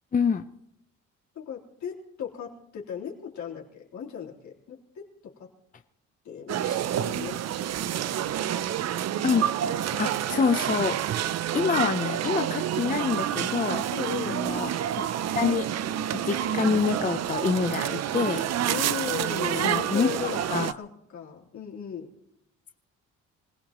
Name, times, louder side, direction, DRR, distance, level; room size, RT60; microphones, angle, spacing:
voice 1, 0.1-0.4 9.2-9.5 10.0-13.8 14.3-14.7 15.3-15.7 16.2-18.5 19.6-20.1 20.5-20.7, left 5 dB, 25° left, 8 dB, 0.7 m, -26 dB
voice 2, 1.4-5.5 6.2-7.4 8.0-8.4 13.9-14.4 18.6-22.1, left 8 dB, 70° left, -3 dB, 3.7 m, -37 dB
sound 1, 6.5-20.7, right 10 dB, 60° right, 0.6 m, -28 dB
26.5 x 17.5 x 3.0 m, 0.80 s
cardioid pair, 90°, 30 cm